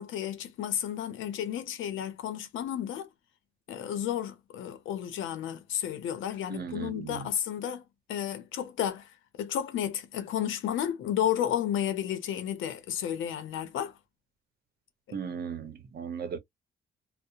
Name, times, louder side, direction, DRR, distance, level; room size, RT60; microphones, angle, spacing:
voice 1, 0.0-3.1 3.7-7.8 8.1-9.1 9.4-13.9, left 10 dB, 80° left, 0.7 m, -32 dB
voice 2, 6.5-7.3 15.1-16.4, right 7 dB, 50° right, 0.8 m, -37 dB
2.7 x 2.1 x 2.3 m
cardioid pair, 90°, 20 cm